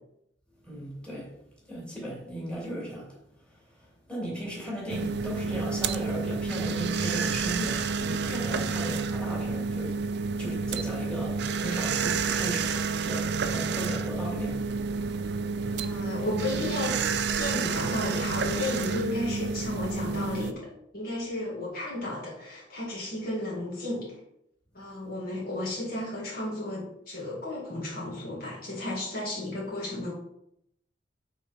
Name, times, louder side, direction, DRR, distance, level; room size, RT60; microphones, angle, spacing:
voice 1, 0.6-1.3 1.6-3.2 3.5-10.0 10.4-12.8 13.0-14.7, equal, 5° left, 2.7 m, -36 dB
sound 1, 4.9-20.5, right 5 dB, 65° right, 0.5 m, -30 dB
voice 2, 15.7-17.0 17.4-24.2 24.7-30.1, left 1 dB, 55° left, 2.1 m, -33 dB
8.1 x 4.0 x 5.1 m
head